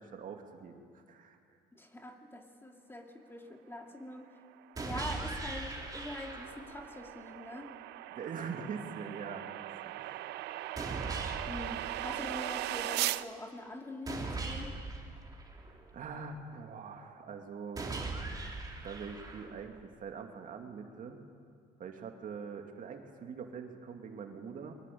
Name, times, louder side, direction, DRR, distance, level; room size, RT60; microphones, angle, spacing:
voice 1, 0.0-1.6 8.1-10.3 15.9-17.9 18.8-21.2 21.8-24.7, right 5 dB, 50° right, 4 dB, 2.5 m, -43 dB
voice 2, 1.7-4.3 4.8-7.7 11.5-14.8, left 1 dB, 15° left, 3 dB, 2.4 m, -44 dB
sound 1, 4.6-13.2, right 16 dB, 85° right, 0.7 m, -39 dB
sound 2, 4.8-6.8 10.8-12.8 14.1-16.1 17.8-19.8, right 3 dB, 20° right, 3.3 m, -40 dB
22.5 x 21.5 x 8.6 m, 2.2 s
cardioid pair, 110°, 17 cm